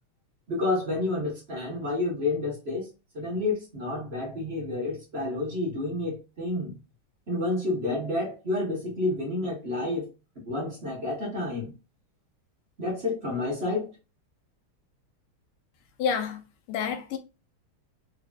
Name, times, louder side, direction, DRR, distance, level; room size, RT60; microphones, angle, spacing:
voice 1, 0.5-2.9 3.1-6.8 7.3-10.1 10.4-11.7 12.8-13.9, left 2 dB, 35° right, 1.4 m, -29 dB
voice 2, 16.0-16.4 16.7-17.2, left 7 dB, 90° left, 1.7 m, -28 dB
4.7 x 3.3 x 2.3 m
omnidirectional pair, 2.3 m